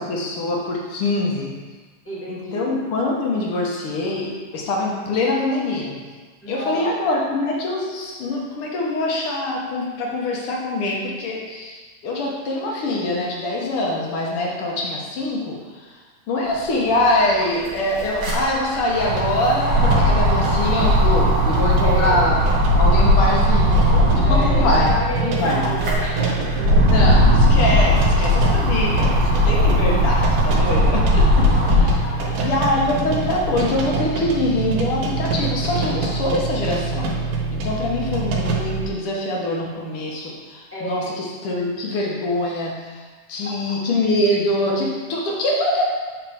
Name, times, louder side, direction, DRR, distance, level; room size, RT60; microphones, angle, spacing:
voice 1, 0.0-1.5 2.3-6.0 6.5-15.9 16.3-22.4 22.8-24.9 25.2-25.6 26.8-32.0 32.4-37.1 37.5-45.8, left 2 dB, 60° left, -2 dB, 1.5 m, -24 dB
voice 2, 2.0-2.8 6.4-6.9 21.8-22.3 24.2-27.1 29.5-29.7 31.8-31.9 32.2-32.4 40.7-41.1 43.4-43.5, equal, 5° left, -9 dB, 1.3 m, -30 dB
sound 1, 16.9-17.0 17.2-25.0 25.5-32.1 32.6-33.7, equal, 50° right, 1.4 m, -18 dB
sound 2, 19.1-38.9, right 3 dB, 85° right, 2.5 m, -26 dB
7.9 x 5.8 x 3.5 m, 1.4 s
omnidirectional pair, 3.6 m